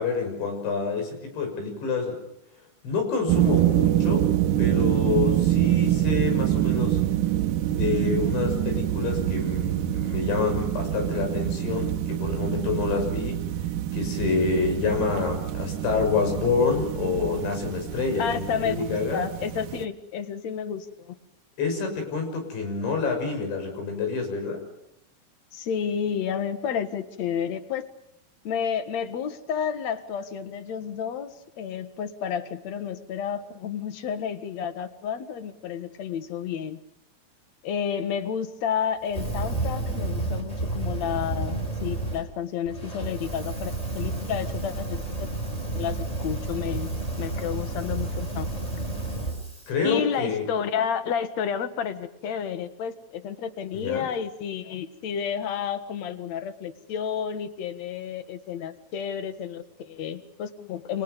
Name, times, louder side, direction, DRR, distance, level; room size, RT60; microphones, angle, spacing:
voice 1, 0.0-2.2 2.8-4.3 4.6-7.0 7.7-13.4 13.9-19.2 21.6-24.6 49.7-50.5 53.7-54.1, left 5 dB, 80° left, 5 dB, 8.7 m, -27 dB
sound 1, 3.3-19.8, right 12 dB, 70° right, 2.0 m, -26 dB
voice 2, 18.2-18.8 19.1-21.2 25.5-27.9 28.4-36.8 37.6-45.3 45.7-46.9 47.2-48.5 49.8-61.0, left 7 dB, 55° left, 10 dB, 2.1 m, -31 dB
Fire, 39.1-42.2 42.6-49.7, right 2 dB, 10° left, 5.7 m, -31 dB
29.5 x 26.0 x 5.4 m, 0.80 s
omnidirectional pair, 5.1 m